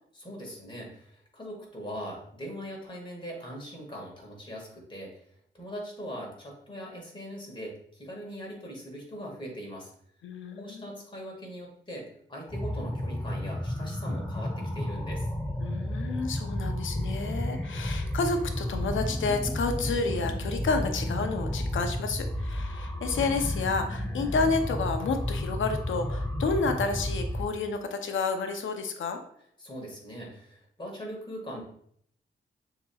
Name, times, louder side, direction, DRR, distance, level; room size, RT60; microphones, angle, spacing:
voice 1, 0.1-5.2 5.5-9.9 10.5-15.3 29.6-31.6, equal, 25° left, -1 dB, 1.7 m, -41 dB
voice 2, 10.2-10.8 15.6-29.2, left 4 dB, 85° left, 6 dB, 0.6 m, -30 dB
sound 1, 12.5-27.5, left 1 dB, 10° left, 0.6 m, -32 dB
6.8 x 3.0 x 2.3 m, 0.66 s
cardioid pair, 70°, 20 cm